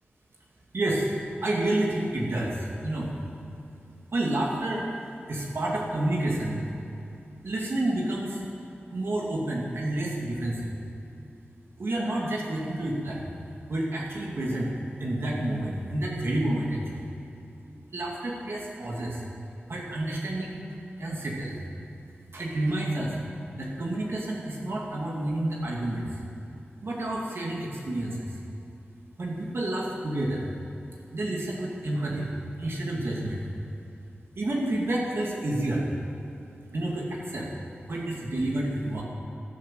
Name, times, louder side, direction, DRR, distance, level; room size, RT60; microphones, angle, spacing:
voice 1, 0.7-1.1 1.4-3.1 4.1-4.9 5.3-6.6 7.4-8.4 8.9-10.7 11.8-13.3 13.7-14.7 15.0-17.1 17.9-19.2 19.7-20.6 21.0-21.6 22.3-23.2 23.6-26.2 26.8-28.4 29.2-30.5 31.1-32.3 32.6-33.5 34.4-35.9 36.7-37.5 37.9-39.0, right 1 dB, 75° right, -3 dB, 2.4 m, -29 dB
13.0 x 12.0 x 7.6 m, 2.8 s
wide cardioid pair, 70°, 4 cm